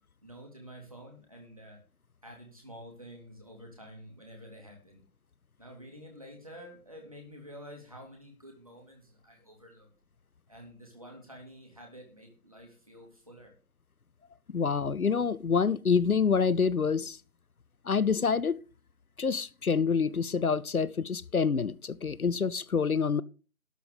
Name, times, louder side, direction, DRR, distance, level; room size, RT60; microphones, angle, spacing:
voice 1, 0.2-1.8 2.2-5.0 5.6-9.9 10.5-13.5, equal, 25° right, 2.8 m, -49 dB
voice 2, 14.5-17.2 17.9-18.6 19.2-23.2, left 5 dB, 75° left, 0.7 m, -27 dB
12.5 x 5.3 x 8.1 m
figure-of-eight pair, 175°, 43 cm